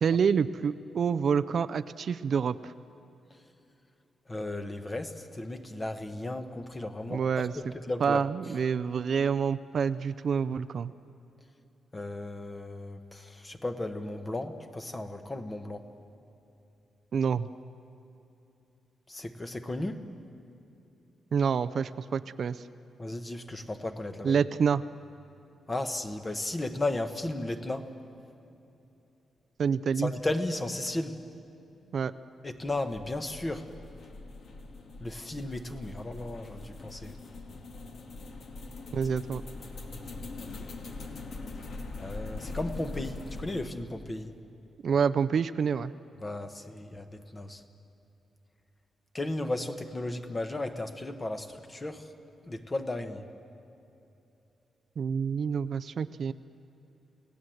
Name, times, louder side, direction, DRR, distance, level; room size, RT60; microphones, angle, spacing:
voice 1, 0.0-2.7 7.1-7.5 8.0-10.9 17.1-17.5 21.3-22.6 24.2-24.8 29.6-30.1 31.9-32.1 38.9-39.4 44.8-45.9 55.0-56.3, right 6 dB, 50° right, 14 dB, 0.4 m, -27 dB
voice 2, 4.3-7.5 7.9-8.2 11.9-15.9 19.1-20.1 23.0-24.4 25.7-27.9 30.0-31.2 32.4-33.7 35.0-37.2 40.6-40.7 42.0-44.3 46.2-47.6 49.1-52.1 52.5-53.2, left 2 dB, 20° left, 8 dB, 1.1 m, -35 dB
sound 1, 32.6-43.7, left 3 dB, 60° left, 2.1 m, -42 dB
29.5 x 17.5 x 7.8 m, 2.9 s
wide cardioid pair, 160°, 0 cm